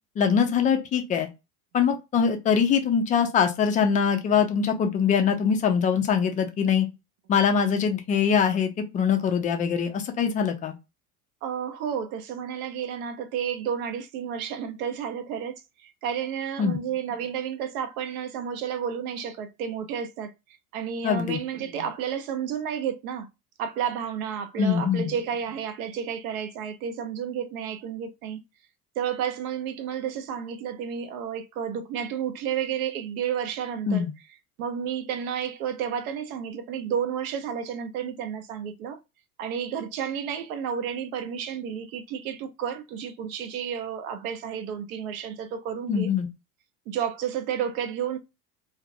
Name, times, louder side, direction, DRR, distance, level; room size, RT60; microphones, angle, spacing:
voice 1, 0.2-1.3 1.7-6.9 7.3-10.7 16.6-16.8 21.0-21.4 24.6-25.1 33.9-34.1 45.9-46.3, left 7 dB, 20° left, 0.3 m, -23 dB
voice 2, 11.4-20.3 20.7-23.3 23.6-28.4 29.0-34.1 34.6-39.0 39.4-46.1 46.9-48.2, right 8 dB, 65° right, 0.7 m, -31 dB
2.3 x 2.0 x 2.6 m
hypercardioid pair, 80°, 47 cm